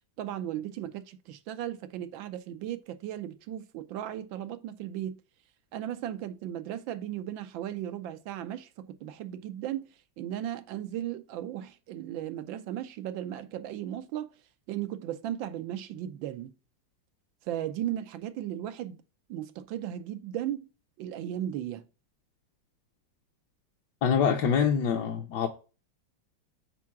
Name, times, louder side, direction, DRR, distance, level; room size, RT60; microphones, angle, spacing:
voice 1, 0.2-5.2 5.7-9.9 10.2-14.3 14.7-16.5 17.4-19.0 19.3-20.7 21.0-21.9, right 11 dB, 90° right, 1.5 m, -36 dB
voice 2, 24.0-25.5, left 7 dB, 65° left, 1.3 m, -25 dB
6.1 x 4.7 x 5.8 m
omnidirectional pair, 2.1 m